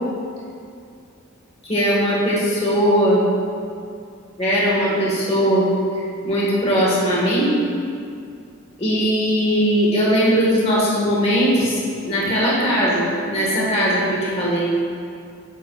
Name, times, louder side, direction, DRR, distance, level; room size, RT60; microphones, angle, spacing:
voice 1, 1.6-3.2 4.4-5.7 5.9-7.6 8.8-14.7, equal, 30° left, -6 dB, 1.5 m, -19 dB
9.3 x 7.3 x 2.4 m, 2.4 s
head